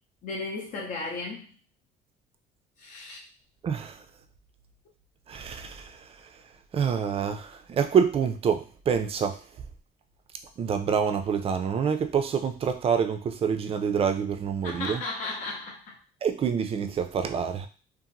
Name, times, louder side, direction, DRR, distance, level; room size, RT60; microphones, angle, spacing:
voice 1, 0.2-1.5 2.8-3.2 14.6-16.0, left 3 dB, 50° left, -1 dB, 0.6 m, -35 dB
voice 2, 3.6-4.0 5.3-6.2 6.7-9.4 10.6-15.0 16.2-17.7, right 7 dB, 35° right, 8 dB, 0.4 m, -27 dB
2.8 x 2.5 x 2.6 m, 0.37 s
cardioid pair, 110°, 17 cm